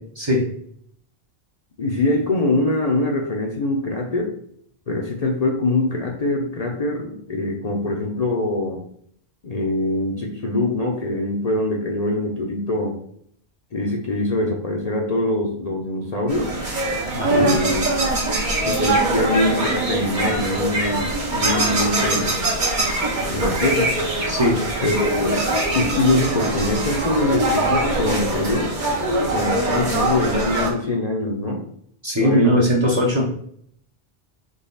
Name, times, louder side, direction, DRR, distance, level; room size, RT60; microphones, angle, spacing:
voice 1, 0.2-0.5 17.1-17.5 24.3-24.6 32.0-33.3, equal, 30° right, -1 dB, 0.8 m, -20 dB
voice 2, 1.8-4.3 4.9-8.9 9.4-13.0 13.7-16.6 17.3-17.7 18.6-22.4 23.3-23.9 24.8-25.4 25.7-28.7 29.2-31.6 32.2-33.0, left 2 dB, 45° left, 0 dB, 0.7 m, -23 dB
sound 1, 16.3-30.7, right 2 dB, 50° right, 1.1 m, -22 dB
4.0 x 3.2 x 3.9 m, 0.65 s
omnidirectional pair, 1.1 m